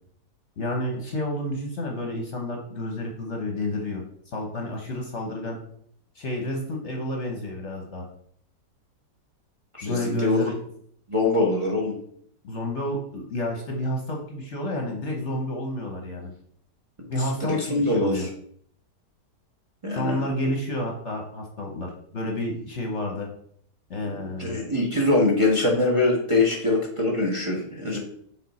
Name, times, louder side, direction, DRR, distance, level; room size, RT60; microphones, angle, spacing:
voice 1, 0.6-5.6 6.1-8.1 9.8-10.5 12.4-16.3 17.1-18.3 19.9-23.3 23.9-24.6, left 1 dB, 50° left, 1 dB, 1.1 m, -30 dB
voice 2, 9.8-10.5 11.1-11.9 17.4-18.3 19.8-20.2 24.0-28.0, left 2 dB, 20° right, -1 dB, 1.0 m, -23 dB
6.5 x 3.9 x 4.2 m, 0.65 s
omnidirectional pair, 1.8 m